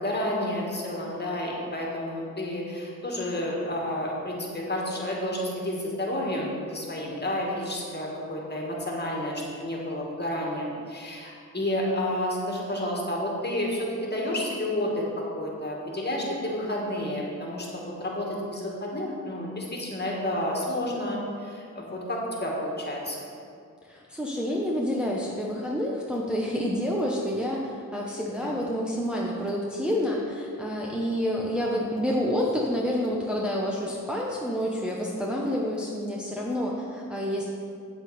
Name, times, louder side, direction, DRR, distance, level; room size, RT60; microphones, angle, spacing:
voice 1, 0.0-23.3 28.4-28.5, left 1 dB, 30° left, -3 dB, 2.2 m, -30 dB
voice 2, 23.8-37.5, equal, 5° right, -4 dB, 1.0 m, -28 dB
8.4 x 7.9 x 4.3 m, 2.3 s
cardioid pair, 70°, 33 cm